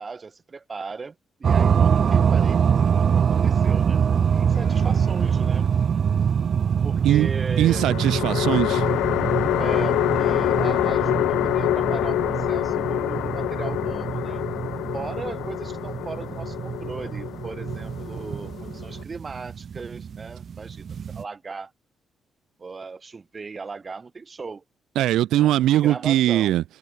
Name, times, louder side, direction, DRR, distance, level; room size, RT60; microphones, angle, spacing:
voice 1, 0.0-2.6 3.1-4.0 4.3-5.7 6.8-7.9 9.6-14.4 14.9-21.7 22.6-24.6 25.3-26.5, right 4 dB, 30° right, 7.2 m, -37 dB
sound 1, 1.4-21.2, right 7 dB, 50° right, 3.2 m, -24 dB
sound 2, 4.5-5.4 7.7-19.0, left 15 dB, 90° left, 4.2 m, -26 dB
voice 2, 7.6-8.8 25.0-26.6, right 13 dB, 85° right, 5.9 m, -20 dB
cardioid pair, 90°, 0 cm